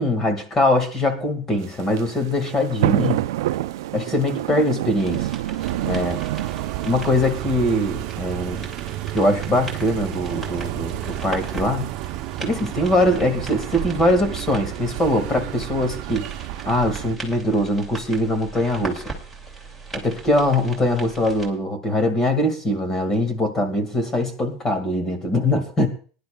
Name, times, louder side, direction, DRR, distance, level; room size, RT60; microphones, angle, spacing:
voice 1, 0.0-3.2 3.9-5.3 5.8-6.2 6.8-8.7 9.1-11.9 12.4-16.3 16.7-19.0 19.9-25.9, left 1 dB, 20° left, 7 dB, 2.0 m, -22 dB
sound 1, 1.6-8.2, right 14 dB, 85° right, 0.5 m, -27 dB
sound 2, 4.9-21.5, right 4 dB, ahead, 2.5 m, -39 dB
sound 3, 5.6-17.1, right 16 dB, 50° right, 0.7 m, -32 dB
21.0 x 10.5 x 2.3 m, 0.40 s
supercardioid pair, 150°, 2 cm